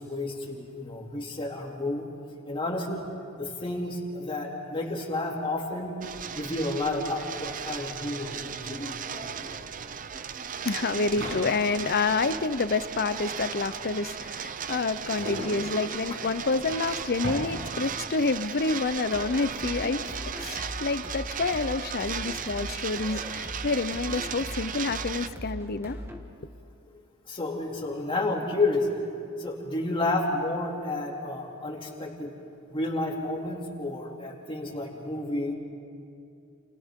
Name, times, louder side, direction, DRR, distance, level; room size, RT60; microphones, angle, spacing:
voice 1, 0.0-2.1 2.5-3.0 3.4-5.9 6.3-8.9 10.1-10.5 27.3-28.9 29.4-32.3 32.7-35.5, left 2 dB, 25° left, -1 dB, 2.7 m, -31 dB
sound 1, 6.0-25.3, right 8 dB, 40° right, 0.6 m, -36 dB
sound 2, 7.4-7.5 7.7-18.1, equal, 60° right, 6.7 m, -41 dB
voice 2, 10.6-26.0, left 3 dB, 50° left, 13 dB, 0.7 m, -28 dB
sound 3, 19.1-26.2, left 1 dB, 10° right, 1.7 m, -40 dB
29.5 x 29.0 x 3.8 m, 2.6 s
head